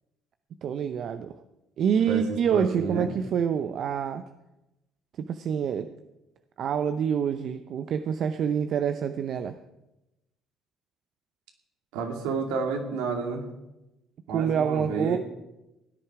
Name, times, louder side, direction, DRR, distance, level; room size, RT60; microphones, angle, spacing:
voice 1, 0.6-1.4 1.8-4.2 5.2-5.9 6.6-9.6 14.3-15.2, right 8 dB, 60° right, 9 dB, 0.7 m, -27 dB
voice 2, 2.1-3.1 11.9-13.5 14.3-15.2, right 4 dB, 80° right, 2 dB, 2.5 m, -30 dB
16.5 x 10.0 x 4.8 m, 0.95 s
hypercardioid pair, 60°, 0 cm